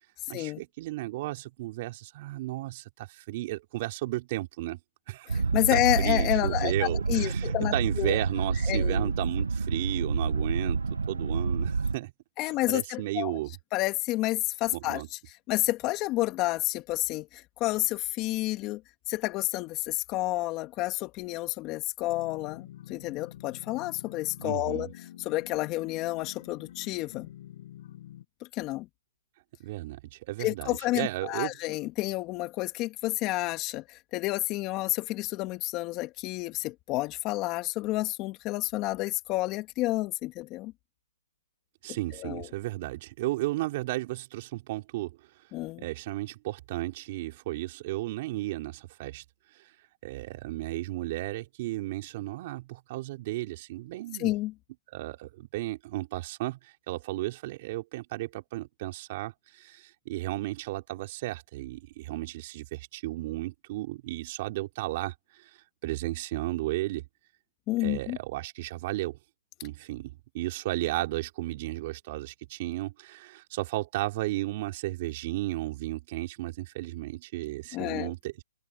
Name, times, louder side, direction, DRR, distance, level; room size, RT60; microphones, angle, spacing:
voice 1, 0.3-4.8 5.1-5.3 5.7-12.1 12.4-13.5 14.7-15.1 24.4-24.9 29.6-31.5 41.8-45.2 45.8-49.2 49.5-49.7 50.0-54.3 54.9-67.1 67.8-69.2 69.6-78.4, right 18 dB, 35° right, 3.9 m, -34 dB
voice 2, 5.3-8.2 8.7-9.1 12.4-13.4 13.7-15.2 15.5-18.8 19.1-24.9 25.2-27.3 28.5-28.9 30.4-40.7 42.2-42.5 45.5-45.9 54.2-54.5 67.7-68.2 77.7-78.1, left 19 dB, 25° left, 2.0 m, -30 dB
sound 1, 5.3-11.9, right 4 dB, 90° right, 0.7 m, -28 dB
sound 2, 22.1-28.3, left 12 dB, 45° left, 6.8 m, -47 dB
open air
hypercardioid pair, 150°, 0 cm